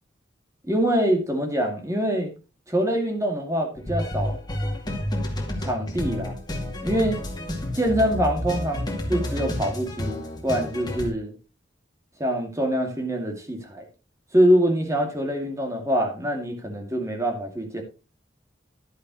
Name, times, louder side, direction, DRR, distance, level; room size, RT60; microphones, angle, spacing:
voice 1, 0.6-2.3 2.7-4.4 5.6-6.3 6.8-7.2 7.7-11.3 12.2-13.8 14.3-17.8, equal, 15° right, 2.3 m, -24 dB
sound 1, 3.8-11.1, left 1 dB, 20° left, 2.2 m, -30 dB
11.5 x 10.5 x 3.1 m
head